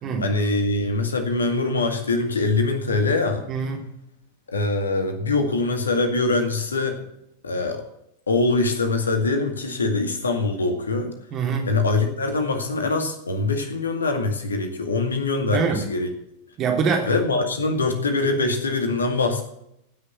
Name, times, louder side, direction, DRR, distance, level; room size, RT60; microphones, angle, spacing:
voice 1, 0.2-3.4 4.5-7.0 7.4-7.8 8.3-11.1 11.7-16.1 17.0-19.4, left 3 dB, 75° left, 6 dB, 2.1 m, -23 dB
voice 2, 3.5-3.8 11.3-11.7 15.5-15.8 16.6-17.1, right 5 dB, 35° right, 2 dB, 3.2 m, -24 dB
15.5 x 6.6 x 8.1 m, 0.79 s
figure-of-eight pair, 90°, 0 cm